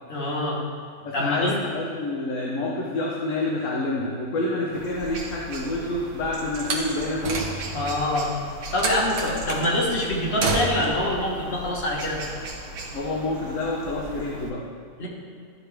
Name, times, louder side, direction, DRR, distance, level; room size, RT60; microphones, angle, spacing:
voice 1, 0.1-0.6 1.1-1.5 7.7-8.3 8.7-12.2 15.0-15.1, left 1 dB, 45° left, -4 dB, 1.5 m, -25 dB
voice 2, 1.0-7.9 12.9-14.6, left 2 dB, 60° left, -3 dB, 1.1 m, -28 dB
sound 1, 4.7-14.5, right 1 dB, 75° right, 1.4 m, -38 dB
Slam, 6.6-7.9 8.8-9.7 10.4-11.0, right 3 dB, 60° right, 1.2 m, -28 dB
11.5 x 3.9 x 3.3 m, 2.3 s
omnidirectional pair, 1.5 m